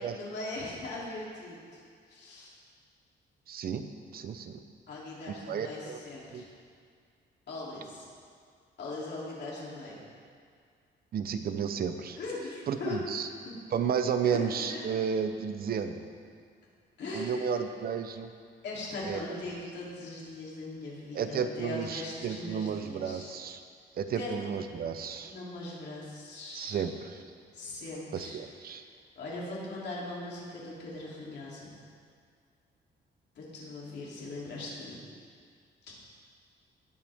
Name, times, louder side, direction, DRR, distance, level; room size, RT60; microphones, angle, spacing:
voice 1, 0.1-1.8 2.1-2.5 4.9-6.4 7.5-8.1 8.8-10.0 12.2-13.0 13.4-13.5 14.2-14.9 17.0-17.4 18.6-23.3 24.1-24.3 25.2-26.8 27.5-28.4 29.2-31.8 33.3-35.0 35.9-36.0, left 2 dB, 65° left, -6 dB, 3.2 m, -40 dB
voice 2, 3.5-4.6 5.5-6.0 6.3-6.4 11.1-12.2 12.7-13.3 13.7-16.0 17.1-18.3 19.0-19.2 21.1-23.6 24.0-25.3 26.5-27.2 28.1-28.8, right 7 dB, 55° right, 8 dB, 0.7 m, -32 dB
18.0 x 8.0 x 3.6 m, 2.1 s
wide cardioid pair, 165°, 19 cm